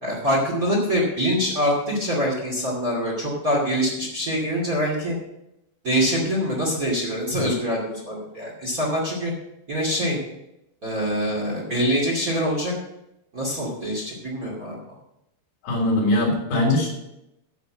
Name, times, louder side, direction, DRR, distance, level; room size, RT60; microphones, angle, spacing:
voice 1, 0.0-5.2 5.8-9.3 9.7-10.2 10.8-12.7 13.3-14.8, equal, 25° right, -3 dB, 2.4 m, -24 dB
voice 2, 15.6-16.9, left 1 dB, 75° left, -2 dB, 5.2 m, -21 dB
9.7 x 7.8 x 7.4 m, 0.87 s
omnidirectional pair, 4.5 m